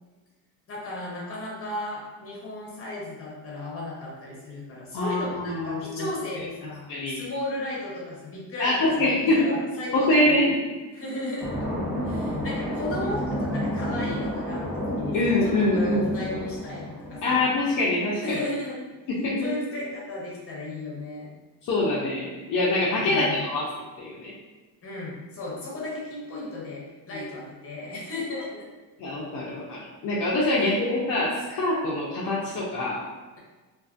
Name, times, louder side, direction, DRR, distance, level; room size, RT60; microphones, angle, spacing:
voice 1, 0.7-10.5 10.9-11.5 12.0-17.4 18.1-18.8 19.4-21.3 23.0-23.4 24.8-28.7 30.6-30.7, left 2 dB, 35° left, -4 dB, 0.9 m, -35 dB
voice 2, 4.9-6.1 6.9-7.2 8.6-9.6 9.9-10.6 15.1-16.0 17.2-18.4 19.1-19.5 21.7-23.7 24.0-24.3 27.1-27.2 29.0-33.0, left 1 dB, 55° left, -6 dB, 0.6 m, -24 dB
sound 1, 11.4-17.8, equal, 5° right, 0.8 m, -31 dB
2.5 x 2.4 x 2.4 m, 1.3 s
cardioid pair, 115°, 38 cm